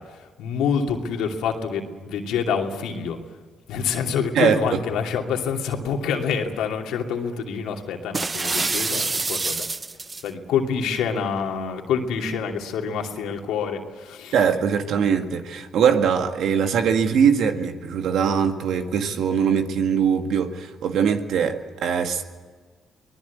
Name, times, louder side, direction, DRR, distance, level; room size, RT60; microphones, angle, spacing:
voice 1, 0.0-3.2 3.7-9.7 10.2-14.4, left 6 dB, 80° left, 2 dB, 2.7 m, -27 dB
sound 1, 8.1-10.3, right 3 dB, 30° right, 0.7 m, -26 dB
voice 2, 14.3-22.2, right 7 dB, 75° right, 6 dB, 2.0 m, -21 dB
24.5 x 19.5 x 8.5 m, 1.4 s
supercardioid pair, 60°, 0 cm